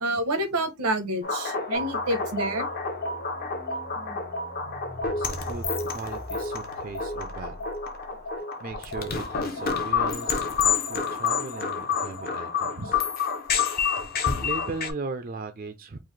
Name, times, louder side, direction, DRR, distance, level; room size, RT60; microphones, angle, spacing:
voice 1, 0.0-2.7 12.8-12.9, right 1 dB, 85° right, 0.9 m, -28 dB
sound 1, 1.2-14.9, left 5 dB, 40° left, 0.6 m, -29 dB
sound 2, 1.7-8.4, equal, 80° left, 1.3 m, -43 dB
voice 2, 4.9-7.6 8.4-13.0 13.7-13.9 14.4-16.0, right 3 dB, 40° right, 0.4 m, -38 dB
3.8 x 2.5 x 3.2 m
head